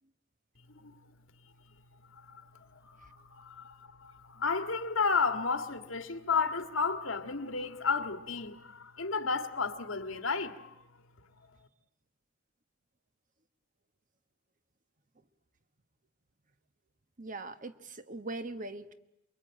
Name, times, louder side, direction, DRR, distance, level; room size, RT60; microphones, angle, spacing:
voice 1, 2.1-10.8, left 5 dB, 90° left, 1.9 m, -33 dB
voice 2, 17.2-18.9, right 2 dB, 40° right, 1.2 m, -41 dB
28.0 x 22.5 x 8.9 m
head